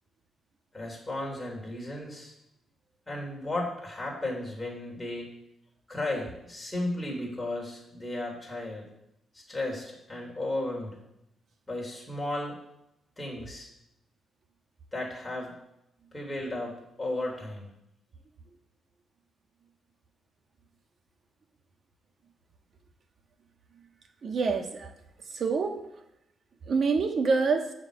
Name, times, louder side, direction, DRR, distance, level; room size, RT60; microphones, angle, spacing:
voice 1, 0.7-2.3 3.1-5.3 5.9-8.9 9.3-11.0 11.7-12.6 13.2-13.7 14.9-15.5 16.1-17.7, left 1 dB, 10° left, -2 dB, 3.4 m, -34 dB
voice 2, 24.2-24.9 25.3-25.8 26.7-27.7, right 4 dB, 45° right, 5 dB, 1.4 m, -26 dB
14.0 x 5.1 x 7.6 m, 0.84 s
cardioid pair, 145°, 0 cm